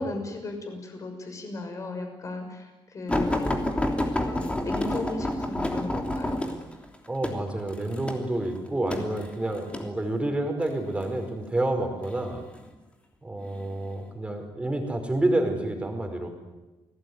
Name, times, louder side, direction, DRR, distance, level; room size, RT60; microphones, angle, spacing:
voice 1, 0.0-3.5 4.2-6.4, left 2 dB, 35° left, 5 dB, 6.5 m, -36 dB
sound 1, 3.1-9.9 10.7-11.1 12.0-12.7 13.4-13.6 14.0-14.1, left 1 dB, 10° left, 3.2 m, -29 dB
voice 2, 7.1-12.4 13.2-16.3, right 1 dB, 10° right, 5 dB, 5.0 m, -29 dB
29.0 x 19.5 x 9.7 m, 1.1 s
cardioid pair, 145°, 10 cm